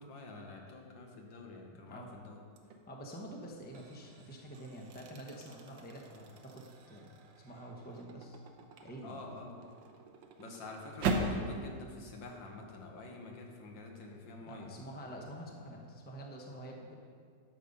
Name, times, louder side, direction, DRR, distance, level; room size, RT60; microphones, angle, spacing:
voice 1, 0.0-2.4 9.0-9.7 10.4-14.7, left 2 dB, 85° left, 1 dB, 2.0 m, -47 dB
voice 2, 1.7-2.1 2.9-8.4 8.8-9.2 14.5-16.9, right 1 dB, 10° left, 0 dB, 0.7 m, -47 dB
sound 1, 2.5-2.9 3.4-11.5, right 3 dB, 80° right, 1.6 m, -41 dB
12.0 x 6.9 x 5.4 m, 2.2 s
omnidirectional pair, 2.0 m